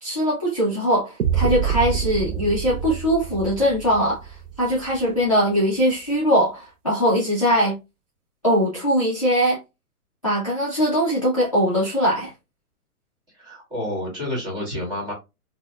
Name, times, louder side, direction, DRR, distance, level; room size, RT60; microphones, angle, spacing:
voice 1, 0.0-7.7 8.4-9.6 10.2-12.3, equal, 25° left, 0.3 m, -21 dB
sound 1, 1.2-5.2, right 9 dB, 60° right, 0.5 m, -27 dB
voice 2, 13.3-15.1, left 1 dB, 10° right, 1.2 m, -29 dB
4.1 x 2.1 x 2.2 m
hypercardioid pair, 160°, 44 cm